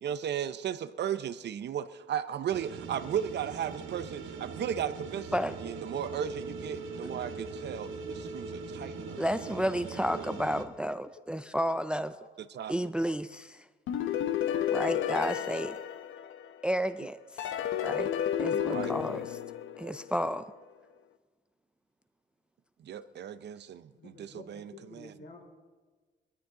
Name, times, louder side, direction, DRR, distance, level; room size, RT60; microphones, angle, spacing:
voice 1, 0.0-9.2 10.1-10.3 12.4-12.9 18.5-18.9 22.8-25.1, right 9 dB, 60° right, 13 dB, 0.7 m, -36 dB
sound 1, 2.5-10.6, right 4 dB, 85° right, 1.6 m, -41 dB
voice 2, 9.2-12.1 12.7-13.6 14.7-15.8 16.6-17.5 17.8-18.1 18.4-19.4 19.8-20.5, equal, 5° right, 11 dB, 0.4 m, -31 dB
voice 3, 9.7-10.1 10.4-10.5 11.4-11.8 12.1-12.3 12.5-12.7 23.9-25.4, left 3 dB, 65° left, 0 dB, 4.0 m, -51 dB
sound 2, 13.9-16.7 17.4-20.2, left 10 dB, 85° left, 0.8 m, -32 dB
19.5 x 13.5 x 3.8 m, 1.3 s
cardioid pair, 90°, 20 cm